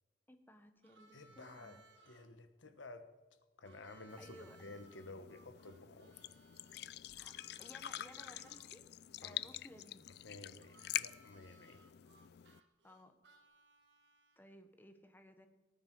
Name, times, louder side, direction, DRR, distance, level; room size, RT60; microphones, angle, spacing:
voice 1, 0.3-1.8 4.2-4.6 7.1-7.3 7.6-8.8 9.2-10.1 12.8-13.1 14.4-15.5, left 1 dB, 10° left, 8 dB, 1.1 m, -58 dB
Harmonica, 0.8-2.3 3.6-8.6 10.6-14.5, right 3 dB, 70° right, 1.7 m, -65 dB
voice 2, 1.1-1.8 2.1-3.1 3.6-6.2 9.2-9.5 10.2-11.9, left 2 dB, 85° left, 10 dB, 1.2 m, -53 dB
sound 1, 4.1-12.6, left 13 dB, 60° left, 0.3 m, -46 dB
18.0 x 9.6 x 4.7 m, 1.3 s
head